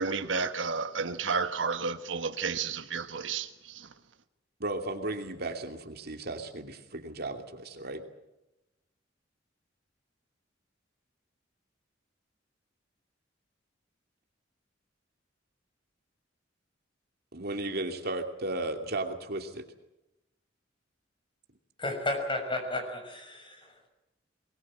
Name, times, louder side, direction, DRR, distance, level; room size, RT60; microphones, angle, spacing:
voice 1, 0.0-3.5 3.7-3.9, right 5 dB, 75° right, 1.4 m, -31 dB
voice 2, 4.6-8.0 17.3-19.6, right 2 dB, 55° right, 2.7 m, -35 dB
voice 3, 21.8-23.9, left 2 dB, 25° left, 6.2 m, -33 dB
23.0 x 21.0 x 7.6 m
head